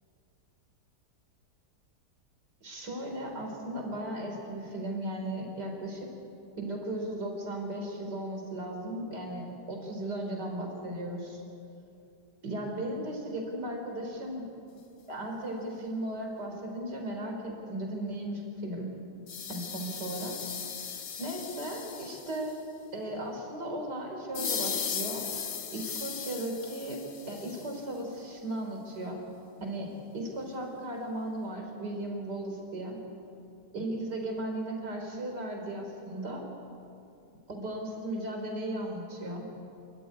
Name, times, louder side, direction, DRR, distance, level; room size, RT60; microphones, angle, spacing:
voice 1, 2.6-6.1 6.6-11.4 12.4-14.5 15.1-18.9 19.5-20.3 21.2-22.5 22.9-25.2 25.7-27.0 27.3-29.2 29.6-29.9 30.1-33.0 33.7-36.4 37.5-39.5, right 1 dB, 70° right, 2 dB, 4.7 m, -36 dB
sound 1, 19.3-22.6 24.3-27.8, left 7 dB, 50° left, 1.1 m, -37 dB
28.0 x 13.5 x 9.8 m, 2.6 s
omnidirectional pair, 1.8 m